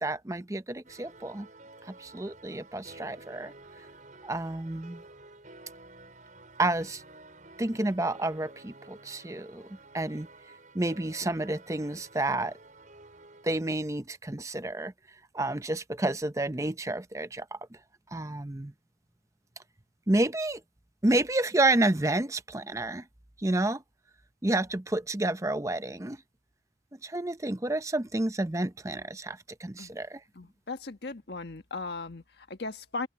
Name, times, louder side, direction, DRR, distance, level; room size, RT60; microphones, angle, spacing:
voice 1, 0.0-1.5 1.9-3.5 4.2-5.0 6.6-7.0 7.6-9.6 9.9-10.3 10.7-12.6 13.4-14.9 15.3-17.6 18.1-18.7 20.1-20.6 21.0-23.0 23.4-23.8 24.4-26.2 27.0-30.2, right 2 dB, 15° right, 0.6 m, -30 dB
sound 1, 0.8-13.6, right 2 dB, 45° right, 5.6 m, -52 dB
voice 2, 30.3-33.1, left 3 dB, 65° left, 1.5 m, -37 dB
head